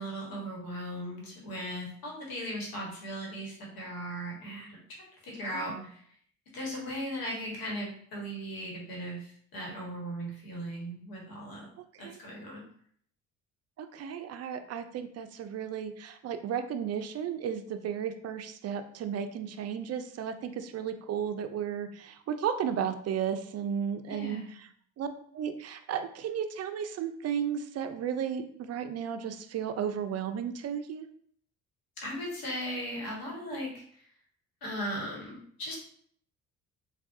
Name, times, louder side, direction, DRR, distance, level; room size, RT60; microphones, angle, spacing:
voice 1, 0.0-6.0 6.5-11.7 12.0-12.6 24.1-24.5 32.0-34.0 34.6-35.8, equal, 70° left, -2 dB, 1.3 m, -38 dB
voice 2, 13.8-24.4 25.0-25.1 25.3-31.1, right 8 dB, 45° right, 9 dB, 0.4 m, -34 dB
3.4 x 2.3 x 2.5 m, 0.62 s
supercardioid pair, 60°, 37 cm